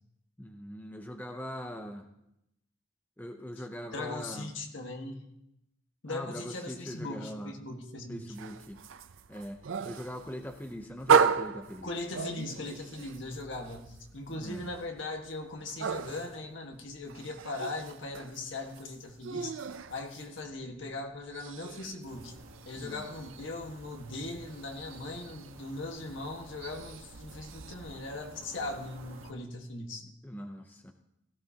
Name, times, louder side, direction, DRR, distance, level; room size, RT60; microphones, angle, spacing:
voice 1, 0.4-2.1 3.2-4.5 6.1-7.5 8.1-8.8 9.3-11.9 14.4-14.6 22.8-23.1 30.2-30.9, equal, 10° left, 4 dB, 0.6 m, -41 dB
voice 2, 3.9-5.3 6.0-8.4 11.8-19.6 19.9-22.4 22.6-30.0, left 2 dB, 65° left, 3 dB, 1.6 m, -39 dB
sound 1, 8.3-20.8 21.1-27.7, right 6 dB, 75° right, 0.5 m, -35 dB
sound 2, 22.1-29.3, right 2 dB, 90° right, 1.2 m, -51 dB
17.0 x 15.0 x 2.9 m, 0.83 s
head